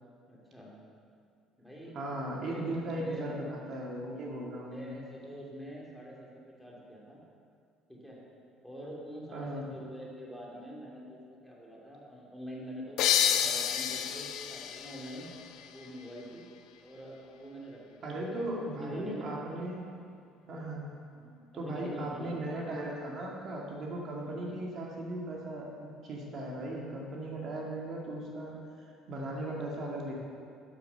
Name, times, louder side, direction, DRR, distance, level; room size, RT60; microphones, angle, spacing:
voice 1, 0.3-0.7 1.6-2.0 2.3-2.7 2.9-3.3 4.6-7.2 7.9-8.2 8.6-13.0 13.3-15.3 15.6-16.5 16.8-18.4 18.7-19.3 20.4-20.6 21.1-22.4 24.2-24.4, equal, 5° left, -4 dB, 2.3 m, -46 dB
voice 2, 1.9-4.9 9.3-9.7 18.0-19.9 20.5-20.9 21.5-28.6 29.1-30.1, right 1 dB, 50° right, -2 dB, 1.8 m, -37 dB
sound 1, 13.0-16.4, left 9 dB, 70° left, 0.6 m, -30 dB
7.8 x 7.0 x 6.6 m, 2.4 s
supercardioid pair, 100°, 0 cm